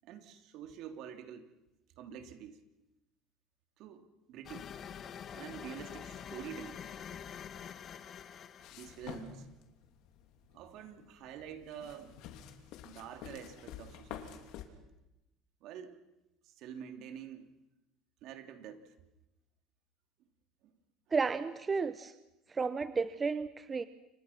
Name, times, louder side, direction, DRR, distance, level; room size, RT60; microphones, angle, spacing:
voice 1, 0.0-1.5 2.0-2.6 3.8-4.7 5.3-6.8 8.7-9.5 10.5-12.2 12.8-14.4 15.6-16.0 16.4-17.6 18.2-18.9, right 8 dB, 65° right, 6 dB, 3.1 m, -47 dB
sound 1, 4.4-9.2, left 8 dB, 40° left, 1.5 m, -46 dB
sound 2, 8.6-14.6, left 9 dB, 70° left, 3.2 m, -49 dB
voice 2, 21.1-22.1 22.5-23.8, right 4 dB, 25° right, 12 dB, 1.0 m, -32 dB
29.0 x 25.0 x 6.0 m, 0.96 s
supercardioid pair, 115°, 0 cm